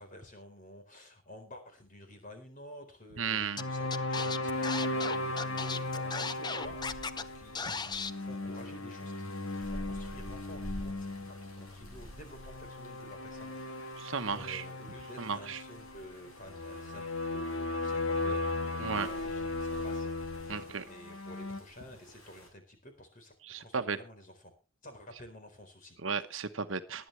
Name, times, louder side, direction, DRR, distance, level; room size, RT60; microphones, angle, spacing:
voice 1, 0.0-14.0 14.3-20.1 20.4-23.3 23.6-24.5 24.8-26.0, left 1 dB, 40° left, 6 dB, 4.1 m, -51 dB
voice 2, 3.2-3.6 14.0-14.6 15.2-15.6 18.8-19.1 20.5-20.8 23.4-24.0 26.0-27.1, right 5 dB, 65° right, 9 dB, 1.1 m, -34 dB
sound 1, 3.6-21.6, left 2 dB, 65° left, 1.6 m, -37 dB
Scratching (performance technique), 3.6-3.7 3.9-7.2 7.5-8.1, left 5 dB, 20° left, 0.6 m, -36 dB
sound 2, 4.5-22.5, equal, 90° left, 6.9 m, -51 dB
19.5 x 11.0 x 3.3 m, 0.31 s
head